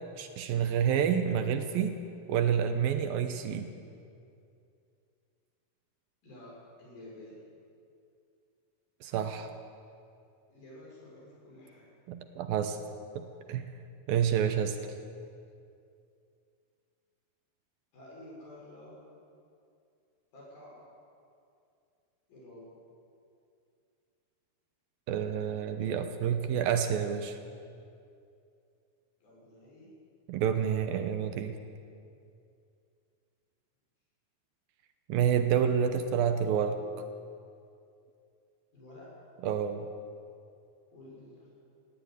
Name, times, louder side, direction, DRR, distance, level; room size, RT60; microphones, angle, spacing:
voice 1, 0.2-2.0 2.3-3.7 9.0-9.5 12.1-12.8 13.2-13.7 14.1-14.9 25.1-27.4 30.3-31.6 35.1-37.0 39.4-39.9, right 8 dB, 75° right, 8 dB, 2.5 m, -29 dB
voice 2, 6.2-7.4 10.5-11.9 17.9-19.0 20.3-20.9 22.3-22.7 29.2-29.9 38.7-39.3 40.9-41.7, left 1 dB, 65° left, -5 dB, 8.8 m, -50 dB
17.5 x 16.0 x 9.6 m, 2.5 s
omnidirectional pair, 4.5 m